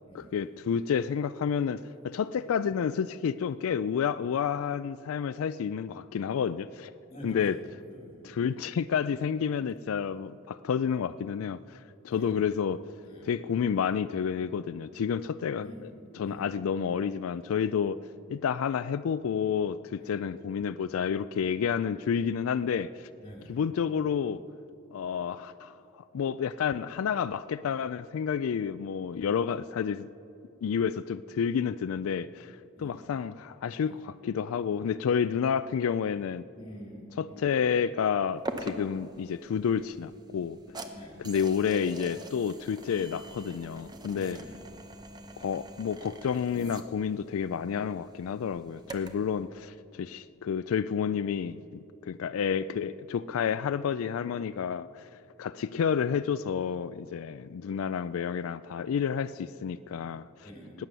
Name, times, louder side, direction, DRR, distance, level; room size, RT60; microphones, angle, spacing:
voice 1, 0.1-6.9 7.2-7.6 8.2-12.8 13.2-15.7 16.2-18.0 18.3-23.1 23.5-24.4 24.9-30.1 30.6-36.4 37.2-40.6 41.2-44.4 45.4-51.6 52.0-60.3, left 7 dB, 90° left, 0.3 m, -30 dB
voice 2, 7.1-8.2 12.1-12.3 13.0-13.4 15.6-15.9 16.2-16.5 20.0-20.2 23.2-23.6 32.8-33.0 33.8-34.0 36.5-37.5 40.9-41.2 44.1-44.6 60.4-60.7, equal, 25° left, 3.1 m, -47 dB
sound 1, 38.5-49.3, right 1 dB, 20° right, 0.7 m, -44 dB
18.0 x 9.3 x 6.8 m
head